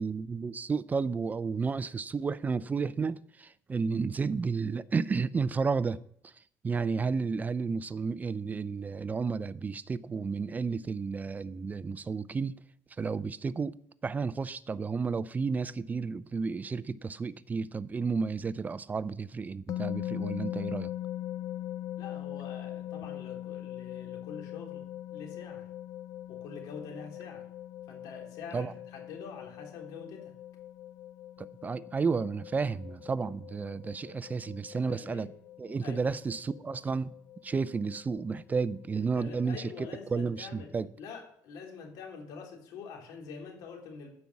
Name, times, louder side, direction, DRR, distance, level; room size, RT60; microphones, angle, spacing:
voice 1, 0.0-6.3 6.6-12.6 13.0-20.9 28.5-28.7 31.4-35.3 35.6-37.1 37.4-40.9, right 5 dB, 25° right, 0.4 m, -32 dB
sound 1, 19.7-39.0, left 13 dB, 65° left, 0.4 m, -41 dB
voice 2, 22.0-25.6 26.3-27.4 27.9-30.3 34.0-34.1 34.7-35.3 35.8-36.0 39.0-44.1, left 5 dB, 85° left, 3.3 m, -46 dB
14.0 x 5.3 x 7.2 m
cardioid pair, 110°, 6 cm